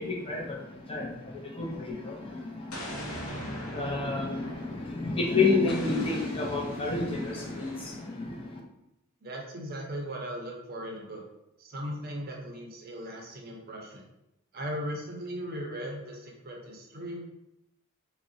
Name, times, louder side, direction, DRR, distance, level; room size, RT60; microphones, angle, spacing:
voice 1, 0.0-8.6, left 3 dB, 25° left, -1 dB, 0.5 m, -30 dB
Explosion, 2.7-5.2 5.7-8.2, equal, 75° left, 0.6 m, -41 dB
voice 2, 9.2-11.2 11.6-14.0 14.5-17.2, equal, 45° right, 0 dB, 0.5 m, -38 dB
3.5 x 2.1 x 2.6 m, 0.86 s
head